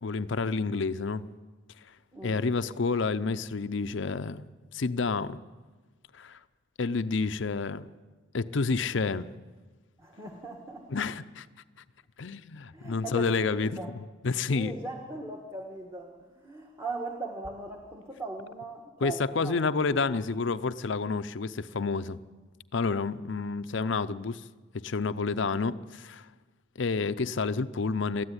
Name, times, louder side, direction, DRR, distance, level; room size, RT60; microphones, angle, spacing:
voice 1, 0.0-1.2 2.2-4.5 4.7-5.4 6.1-6.4 6.8-7.9 8.3-9.3 10.9-11.5 12.2-14.7 19.0-22.2 22.7-24.4 24.7-26.3 26.8-28.2, left 4 dB, 60° left, 13 dB, 0.6 m, -29 dB
voice 2, 10.0-10.9 12.7-13.9 14.5-20.0, right 2 dB, 15° right, 2 dB, 1.5 m, -39 dB
20.0 x 13.5 x 9.8 m, 1.4 s
head